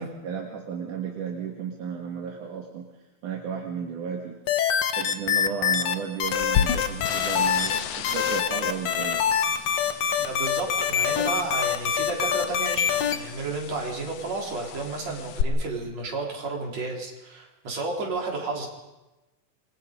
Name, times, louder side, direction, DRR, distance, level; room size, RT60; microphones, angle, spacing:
voice 1, 0.0-2.9 3.2-4.4 5.0-9.2, right 7 dB, 75° right, 0 dB, 3.4 m, -33 dB
sound 1, 4.5-5.9 6.2-13.2, left 8 dB, 60° left, 2.2 m, -24 dB
sound 2, 6.2-15.4, left 10 dB, 85° left, 2.6 m, -34 dB
voice 2, 10.2-18.7, right 3 dB, 55° right, -1 dB, 5.1 m, -32 dB
28.0 x 22.5 x 5.3 m, 1.0 s
omnidirectional pair, 3.6 m